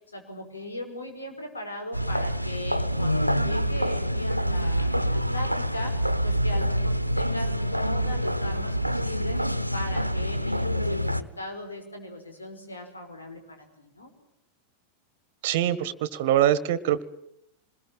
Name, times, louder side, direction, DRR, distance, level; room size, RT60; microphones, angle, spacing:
voice 1, 0.1-14.1, left 1 dB, 75° left, 5 dB, 5.6 m, -38 dB
sound 1, 1.9-11.2, equal, 90° right, 1.0 m, -26 dB
voice 2, 15.4-17.0, right 11 dB, 50° right, 18 dB, 1.3 m, -23 dB
27.0 x 21.0 x 9.0 m, 0.76 s
figure-of-eight pair, 90°, 0 cm